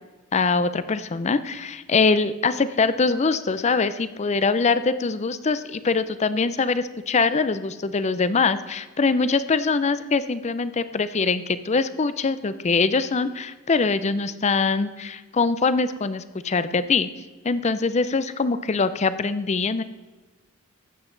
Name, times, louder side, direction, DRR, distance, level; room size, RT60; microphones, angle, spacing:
voice 1, 0.3-17.1 17.4-19.8, left 4 dB, 30° left, 14 dB, 0.5 m, -23 dB
13.0 x 8.7 x 3.9 m, 1.3 s
head